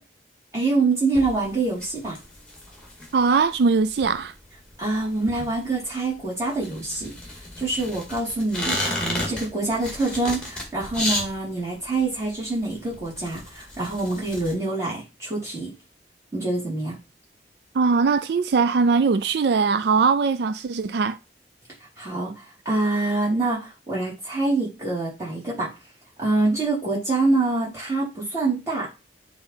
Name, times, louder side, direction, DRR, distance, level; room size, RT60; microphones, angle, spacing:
voice 1, 0.5-2.2 4.8-7.1 7.6-15.7 16.3-17.0 22.0-22.3 22.6-25.7 26.2-28.9, right 3 dB, 15° right, 4.1 m, -25 dB
sound 1, 1.1-14.5, left 1 dB, 5° left, 1.9 m, -34 dB
voice 2, 3.1-4.3 17.7-21.2, right 4 dB, 65° right, 0.4 m, -20 dB
8.7 x 3.7 x 4.5 m
head